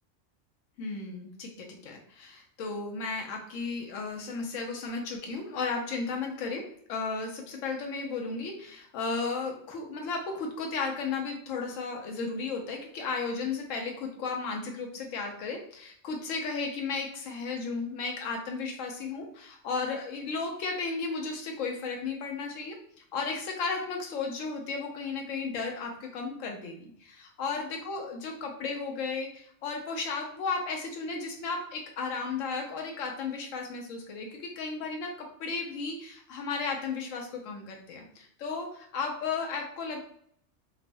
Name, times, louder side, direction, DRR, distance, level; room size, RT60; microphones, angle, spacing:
voice 1, 0.8-6.6 6.9-22.8 23.1-40.0, left 4 dB, 85° left, 2 dB, 1.0 m, -34 dB
3.0 x 2.0 x 2.6 m, 0.64 s
omnidirectional pair, 1.3 m